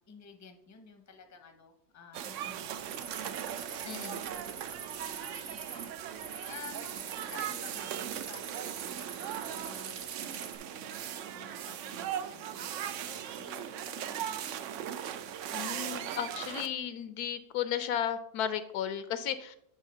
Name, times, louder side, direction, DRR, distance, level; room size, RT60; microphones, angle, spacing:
voice 1, 0.1-3.5 5.1-5.9 6.5-14.4, left 5 dB, 15° left, 5 dB, 0.6 m, -52 dB
sound 1, 2.1-16.7, right 10 dB, 70° right, 0.7 m, -39 dB
sound 2, 2.9-5.9 6.2-7.8 8.1-10.6, right 6 dB, 55° right, 1.3 m, -45 dB
voice 2, 3.8-4.2 15.5-19.6, left 9 dB, 80° left, 12 dB, 1.1 m, -34 dB
9.0 x 3.5 x 5.6 m, 0.72 s
omnidirectional pair, 1.6 m